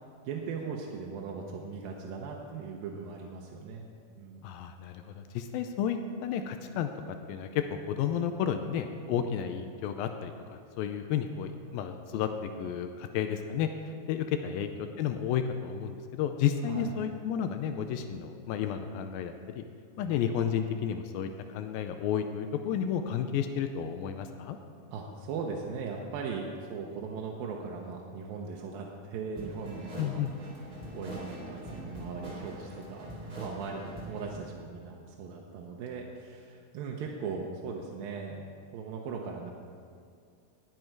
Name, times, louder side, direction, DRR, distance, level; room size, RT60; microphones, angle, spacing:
voice 1, 0.3-3.8 4.2-4.5 9.1-9.3 16.7-16.9 20.0-20.1 24.9-30.2 30.9-33.1 33.4-38.4 38.7-39.5, right 5 dB, 75° right, 0 dB, 2.3 m, -39 dB
voice 2, 4.4-12.3 12.6-19.6 20.0-24.6 30.0-30.3, left 8 dB, 85° left, 7 dB, 2.1 m, -32 dB
sound 1, 29.3-34.4, right 1 dB, 30° right, 2.0 m, -42 dB
19.5 x 7.7 x 4.6 m, 2.3 s
omnidirectional pair, 4.8 m